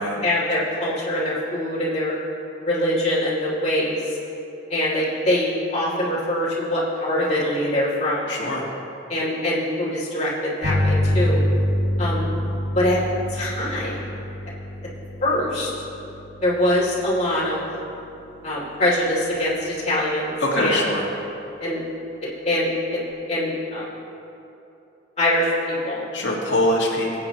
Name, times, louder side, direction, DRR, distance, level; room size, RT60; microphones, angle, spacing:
voice 1, 0.2-2.1 2.6-4.0 4.7-8.3 9.1-11.4 12.0-12.3 12.7-13.0 13.3-14.1 15.2-15.7 16.4-17.6 18.4-20.8 21.6-21.8 22.4-23.0 23.3-23.9 25.2-26.1, left 1 dB, 35° left, -6 dB, 2.7 m, -23 dB
voice 2, 8.3-8.7 20.4-21.1 26.1-27.2, left 1 dB, 85° left, -3 dB, 1.7 m, -23 dB
sound 1, 10.6-19.9, left 1 dB, 60° right, 1.6 m, -27 dB
21.5 x 8.6 x 3.0 m, 2.8 s
head